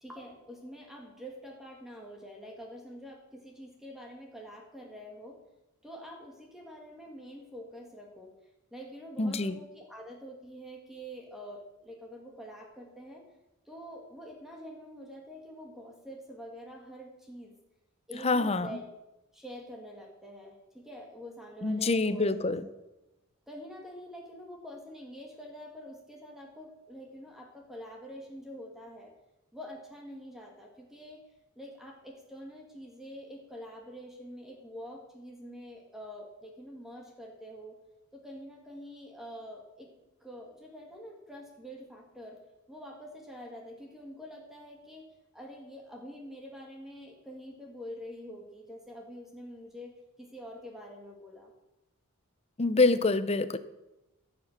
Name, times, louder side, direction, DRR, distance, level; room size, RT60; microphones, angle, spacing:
voice 1, 0.0-5.4 5.8-8.3 8.7-13.2 13.7-17.6 18.1-18.8 19.3-22.5 23.5-29.1 29.5-31.2 31.6-37.8 38.1-39.9 40.2-42.4 42.7-45.0 45.3-51.5, equal, ahead, 0 dB, 2.0 m, -46 dB
voice 2, 9.2-9.6 18.2-18.8 21.6-22.7 52.6-53.6, left 3 dB, 30° left, 13 dB, 0.6 m, -26 dB
15.5 x 7.4 x 6.6 m, 0.95 s
head